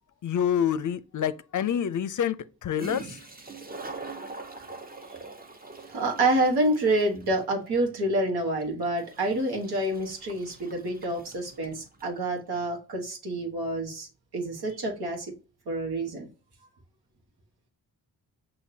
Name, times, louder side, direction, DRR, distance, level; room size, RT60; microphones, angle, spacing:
voice 1, 0.2-2.4 2.6-3.0, left 9 dB, 55° left, 0.5 m, -27 dB
Toilet flush, 0.7-0.8 2.5-2.6 2.8-12.2, right 3 dB, 25° right, 0.9 m, -44 dB
voice 2, 5.9-14.1 14.3-15.3 15.7-16.3, right 1 dB, 85° right, 1.4 m, -27 dB
6.6 x 2.8 x 2.7 m
cardioid pair, 45°, 37 cm